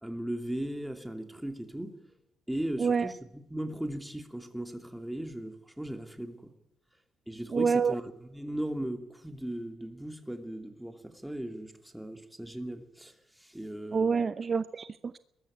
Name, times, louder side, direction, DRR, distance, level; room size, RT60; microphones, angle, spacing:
voice 1, 0.0-2.0 2.5-6.5 7.3-14.2, right 1 dB, 5° right, 2.8 m, -37 dB
voice 2, 2.8-3.1 7.5-7.9 13.9-15.2, right 5 dB, 40° right, 0.7 m, -27 dB
21.5 x 13.5 x 9.6 m
cardioid pair, 90°, 0 cm